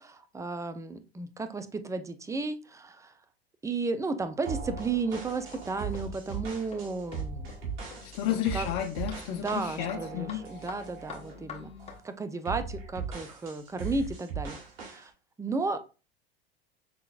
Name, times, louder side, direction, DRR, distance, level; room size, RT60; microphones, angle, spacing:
voice 1, 0.0-3.1 3.6-7.5 8.5-8.7 9.3-11.7 12.0-15.1 15.4-15.8, right 3 dB, 10° right, 0.5 m, -33 dB
sound 1, 4.5-12.0, left 6 dB, 20° left, 1.2 m, -48 dB
sound 2, 4.5-11.4 11.8-12.1 12.5-15.0, right 5 dB, 65° right, 2.4 m, -39 dB
voice 2, 8.0-10.9, left 11 dB, 50° left, 0.7 m, -33 dB
5.8 x 3.8 x 2.4 m
hypercardioid pair, 90°, 32 cm